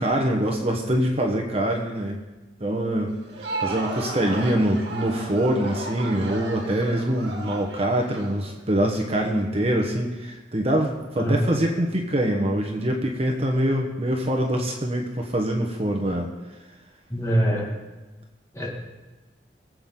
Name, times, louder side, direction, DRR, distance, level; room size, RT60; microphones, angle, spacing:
voice 1, 0.0-2.2 2.6-16.3, right 1 dB, 35° right, 1 dB, 1.2 m, -24 dB
Crowd, 3.1-9.0, right 3 dB, 85° right, 2.0 m, -34 dB
voice 2, 11.2-11.5 17.1-17.7 18.5-18.7, right 1 dB, 20° left, -3 dB, 2.5 m, -23 dB
22.5 x 7.8 x 3.8 m, 1.1 s
head